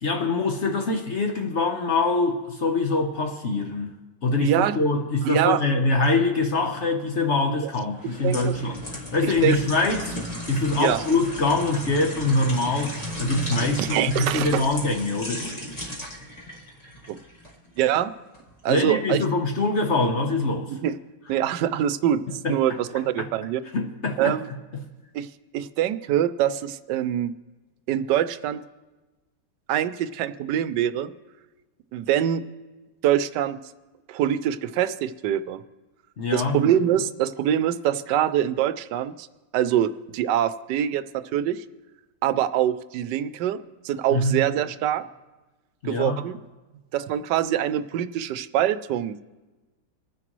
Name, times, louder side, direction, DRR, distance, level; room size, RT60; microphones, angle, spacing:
voice 1, 0.0-3.9 4.2-10.2 10.5-12.9 13.2-15.5 18.7-20.7 22.4-22.6 23.7-24.4 36.2-36.6 44.1-44.4 45.8-46.2, left 3 dB, 50° left, 4 dB, 1.0 m, -24 dB
voice 2, 4.4-4.8 5.2-5.6 7.6-7.7 8.0-8.6 9.2-9.6 10.8-11.0 13.8-14.6 17.1-17.2 17.8-18.1 18.6-19.2 20.7-20.9 21.3-23.6 24.2-24.5 25.1-25.3 25.5-27.3 27.9-28.6 29.7-31.1 31.9-32.4 33.0-33.6 34.1-35.6 36.3-39.3 39.5-41.6 42.2-43.6 43.8-45.0 45.8-46.4 46.9-49.2, right 10 dB, 80° right, 13 dB, 1.2 m, -24 dB
sound 1, 7.9-17.9 18.3-18.5, equal, 25° left, 1.5 m, -35 dB
27.5 x 9.8 x 3.1 m, 1.2 s
omnidirectional pair, 1.9 m